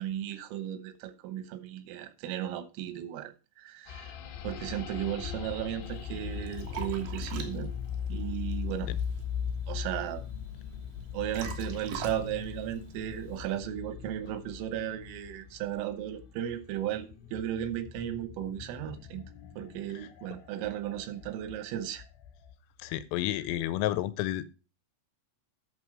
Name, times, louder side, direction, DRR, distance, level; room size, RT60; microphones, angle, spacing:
voice 1, 0.0-4.1 4.4-7.7 8.1-8.9 9.7-10.2 11.1-19.3 19.6-22.0, right 11 dB, 85° right, 3.6 m, -35 dB
sound 1, 3.9-22.5, left 8 dB, 70° left, 3.4 m, -40 dB
Liquid, 5.8-13.6, right 7 dB, 65° right, 2.7 m, -45 dB
voice 2, 22.8-24.4, left 14 dB, 90° left, 3.4 m, -31 dB
11.0 x 6.4 x 4.8 m
omnidirectional pair, 5.8 m